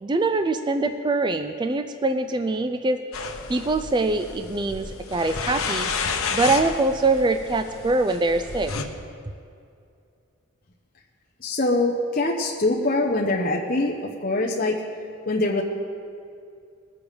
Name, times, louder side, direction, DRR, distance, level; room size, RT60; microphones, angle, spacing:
voice 1, 0.0-3.0 3.5-5.9 6.3-8.7, right 2 dB, 20° right, 8 dB, 0.3 m, -23 dB
sound 1, 3.1-8.8, left 5 dB, 80° left, 1.0 m, -31 dB
voice 2, 11.4-14.8 15.3-15.6, left 2 dB, 40° left, -1 dB, 0.9 m, -23 dB
20.0 x 7.0 x 5.2 m, 2.5 s
head